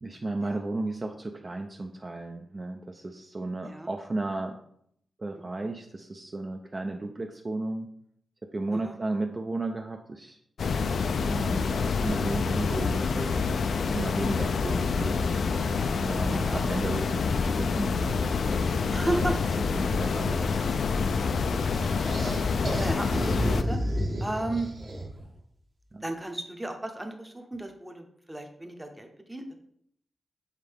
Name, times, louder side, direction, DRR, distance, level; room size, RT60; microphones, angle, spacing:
voice 1, 0.0-4.6 5.2-7.9 8.5-10.4 10.8-13.3 13.8-15.3 16.0-19.3 19.8-20.6 25.9-26.0, right 2 dB, 30° right, 3 dB, 0.5 m, -34 dB
sound 1, 10.6-23.6, left 5 dB, 70° left, 0.4 m, -27 dB
voice 2, 16.3-16.9 18.9-19.4 21.5-21.8 22.1-22.4 22.8-23.8 24.2-24.7 26.0-29.6, right 1 dB, 10° right, 4 dB, 0.8 m, -35 dB
sound 2, 21.7-25.3, equal, 50° right, 1.5 m, -31 dB
7.4 x 3.8 x 3.5 m, 0.70 s
wide cardioid pair, 115°, 0 cm